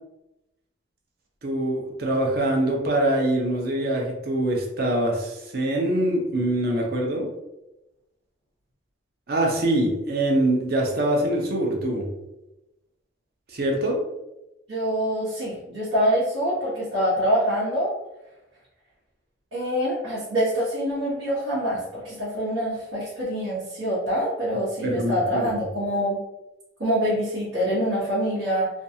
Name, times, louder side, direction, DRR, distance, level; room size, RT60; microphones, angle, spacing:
voice 1, 1.4-7.3 9.3-12.1 13.5-14.0 24.8-25.5, right 1 dB, 55° right, 0 dB, 0.6 m, -24 dB
voice 2, 14.7-17.9 19.5-26.2 26.8-28.7, equal, 85° right, -10 dB, 1.0 m, -25 dB
2.5 x 2.3 x 2.7 m, 0.95 s
head